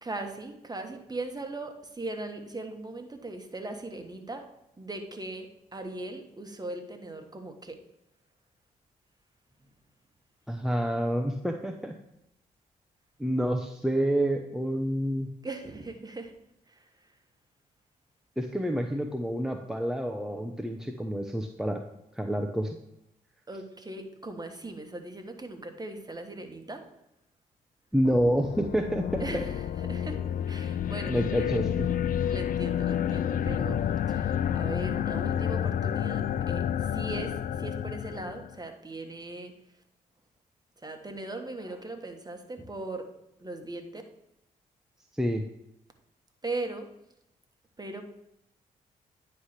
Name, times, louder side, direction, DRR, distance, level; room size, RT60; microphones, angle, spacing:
voice 1, 0.0-4.5 4.8-7.8 15.4-16.3 16.7-16.9 23.5-26.8 29.2-30.2 30.5-31.6 32.3-33.8 34.1-39.5 40.8-43.1 43.4-44.0 46.4-46.9 47.8-48.0, right 2 dB, 25° right, 5 dB, 1.4 m, -39 dB
voice 2, 10.5-12.0 13.2-15.3 18.4-21.8 22.1-22.8 27.9-29.2 31.1-31.9 45.1-45.4, equal, 5° right, 3 dB, 0.7 m, -28 dB
sound 1, 28.0-38.6, left 9 dB, 55° left, 0.4 m, -30 dB
9.5 x 3.3 x 5.8 m, 0.84 s
hypercardioid pair, 45°, 17 cm